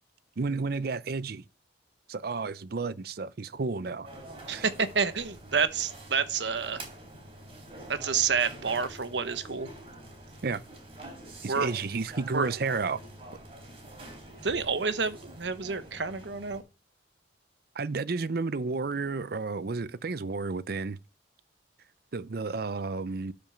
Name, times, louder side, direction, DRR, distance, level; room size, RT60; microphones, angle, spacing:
voice 1, 0.4-1.4 2.1-4.1 4.5-4.6 10.4-10.6 11.4-13.0 17.7-21.0 22.1-23.3, right 4 dB, 55° right, 0.6 m, -31 dB
sound 1, 4.0-16.6, right 1 dB, 30° right, 3.5 m, -46 dB
voice 2, 4.5-6.8 7.9-9.7 11.5-11.7 12.3-12.5 14.4-16.6, right 5 dB, 70° right, 1.1 m, -29 dB
12.5 x 5.3 x 5.8 m
head